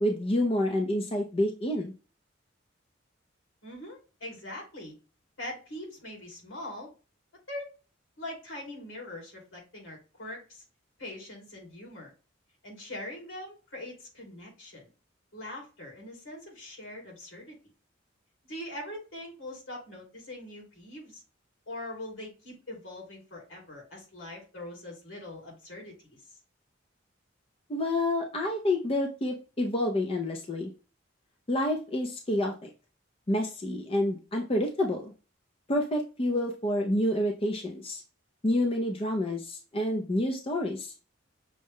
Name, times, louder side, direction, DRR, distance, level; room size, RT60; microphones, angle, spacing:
voice 1, 0.0-1.9 27.7-30.7 31.5-32.7 33.3-35.1 35.7-38.0 38.4-40.9, left 1 dB, 30° left, 2 dB, 0.5 m, -28 dB
voice 2, 3.6-5.0 5.4-6.9 7.5-7.7 8.2-10.6 11.0-12.1 12.6-14.9 15.3-17.6 18.5-21.2 21.7-26.2, left 1 dB, 75° left, -1 dB, 2.4 m, -42 dB
6.3 x 2.2 x 3.5 m, 0.33 s
head